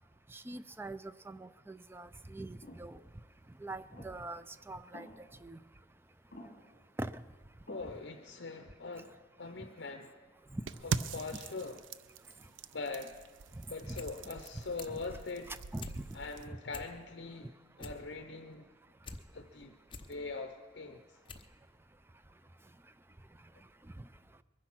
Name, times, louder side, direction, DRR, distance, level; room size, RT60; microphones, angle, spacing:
voice 1, 0.3-3.0 3.6-5.1 5.4-5.6 7.0-7.1 10.5-10.6 13.9-14.0 15.5-15.9, right 2 dB, 10° right, 14 dB, 0.4 m, -43 dB
sound 1, 2.6-2.9 3.9-4.3 4.9-5.4 6.3-6.8 7.7-8.2, left 1 dB, 40° left, 2.6 m, -52 dB
voice 2, 7.7-10.1 10.8-11.8 12.7-13.2 13.7-15.6 16.1-17.5 17.8-18.7 19.3-19.8 20.1-21.2, left 3 dB, 65° left, 6 dB, 0.8 m, -42 dB
sound 2, 10.7-16.5, right 5 dB, 85° right, 0.5 m, -42 dB
sound 3, 14.0-14.2 14.4-15.1 15.4-16.0 16.4-16.5 16.7-17.3 17.6-19.2 19.6-20.1 20.7-20.8 21.3-21.5 21.8-21.9, left 4 dB, 25° left, 0.8 m, -48 dB
22.0 x 10.0 x 6.1 m, 1.5 s
head